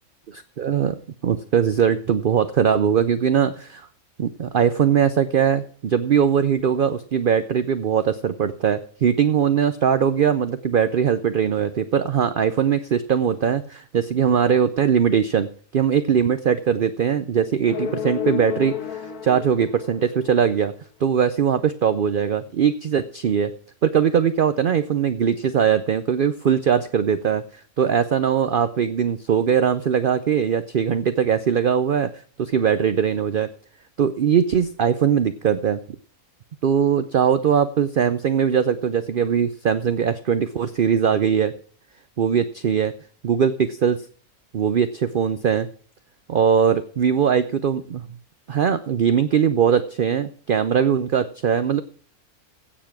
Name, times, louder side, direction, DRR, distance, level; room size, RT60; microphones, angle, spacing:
voice 1, 0.6-3.9 4.2-20.7 21.0-23.5 23.8-27.4 27.8-33.5 34.0-35.8 36.6-41.5 42.2-42.9 43.2-44.0 44.5-45.7 46.3-48.1 48.5-51.8, right 8 dB, 55° right, 12 dB, 0.6 m, -21 dB
sound 1, 17.7-20.5, left 9 dB, 80° left, 1.7 m, -31 dB
16.0 x 7.2 x 6.0 m, 0.43 s
omnidirectional pair, 1.6 m